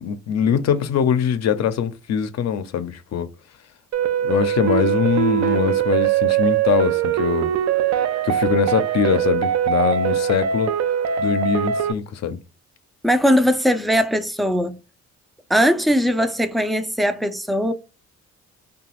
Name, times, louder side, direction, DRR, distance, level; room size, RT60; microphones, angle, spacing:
voice 1, 0.0-3.3 4.2-7.5 8.2-10.7 11.2-12.4, left 8 dB, 60° left, 0.6 m, -22 dB
sound 1, 3.9-11.9, right 9 dB, 65° right, 0.5 m, -21 dB
voice 2, 13.0-14.8 15.5-17.7, equal, ahead, 0.4 m, -19 dB
2.9 x 2.3 x 2.9 m
cardioid pair, 90°, 30 cm